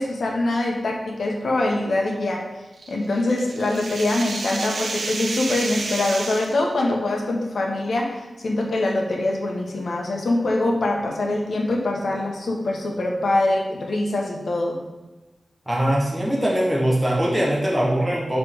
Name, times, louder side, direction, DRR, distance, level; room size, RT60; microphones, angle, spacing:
voice 1, 0.0-2.4 2.9-14.8, left 2 dB, 80° left, 0 dB, 1.0 m, -24 dB
sound 1, 2.8-6.6, right 3 dB, 80° right, 0.6 m, -31 dB
voice 2, 15.7-18.4, right 1 dB, 10° right, -5 dB, 1.3 m, -21 dB
6.4 x 3.3 x 4.5 m, 1.1 s
wide cardioid pair, 115°, 0 cm